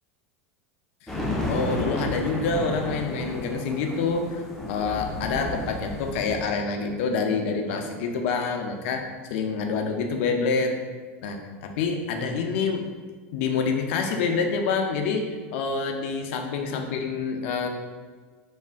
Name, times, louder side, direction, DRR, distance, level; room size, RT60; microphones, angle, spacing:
sound 1, 1.1-6.5, left 1 dB, 5° left, 0.5 m, -32 dB
voice 1, 1.5-10.8 11.2-12.9 13.3-17.7, left 4 dB, 65° left, 4 dB, 0.4 m, -27 dB
2.4 x 2.1 x 3.4 m, 1.5 s
hypercardioid pair, 100°, 7 cm